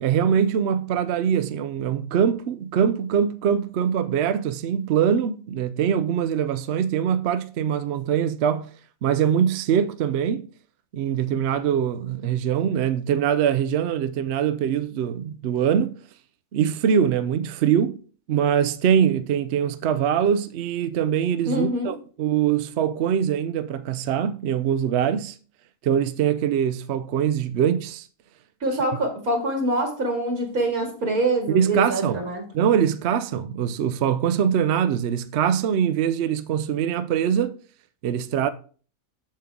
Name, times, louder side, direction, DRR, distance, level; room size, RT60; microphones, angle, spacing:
voice 1, 0.0-8.7 9.0-10.5 10.9-15.9 16.5-18.0 18.3-25.3 25.8-28.1 31.5-32.2 32.5-37.5 38.0-38.5, right 8 dB, 65° right, 0.7 m, -23 dB
voice 2, 21.5-21.9 28.6-32.4, right 1 dB, 80° right, 2.8 m, -25 dB
7.6 x 7.3 x 3.6 m
omnidirectional pair, 1.5 m